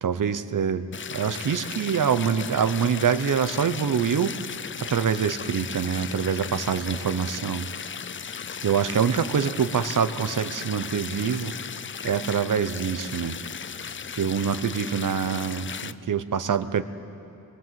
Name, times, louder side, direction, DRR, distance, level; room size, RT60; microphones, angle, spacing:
voice 1, 0.0-4.3 4.8-7.7 8.6-11.5 12.0-13.4 14.2-16.8, right 7 dB, 65° right, 11 dB, 0.9 m, -25 dB
sound 1, 0.9-15.9, left 6 dB, 35° left, 0.4 m, -36 dB
24.5 x 21.5 x 7.7 m, 2.8 s
wide cardioid pair, 140°, 34 cm